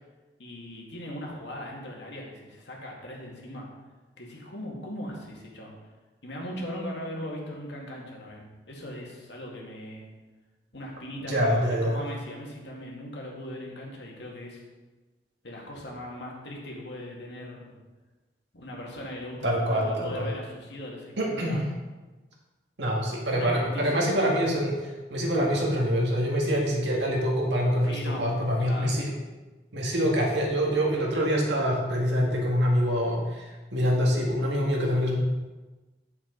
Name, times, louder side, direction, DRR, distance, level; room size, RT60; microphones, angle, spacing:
voice 1, 0.4-3.7 4.2-5.8 6.2-10.1 10.7-14.6 15.4-17.8 18.5-21.6 23.3-24.0 27.8-28.3 28.6-29.0, left 1 dB, 80° left, -2 dB, 2.0 m, -39 dB
voice 2, 11.2-12.0 19.4-20.3 21.2-21.6 22.8-29.1 29.7-35.2, equal, 85° right, -1 dB, 2.0 m, -25 dB
8.3 x 7.1 x 3.9 m, 1.2 s
head